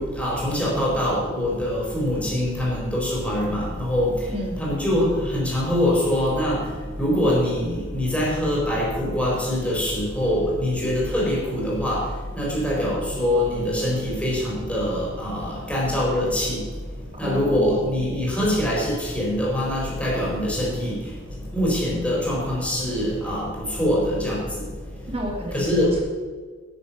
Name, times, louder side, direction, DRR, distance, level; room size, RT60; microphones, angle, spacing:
voice 1, 0.0-4.3 4.6-6.7 7.0-16.6 17.2-21.1 21.5-24.7 25.5-25.9, left 1 dB, 5° left, -4 dB, 4.2 m, -24 dB
voice 2, 17.2-18.4 25.1-26.0, equal, 30° right, -1 dB, 2.8 m, -31 dB
9.8 x 9.4 x 5.9 m, 1.5 s
head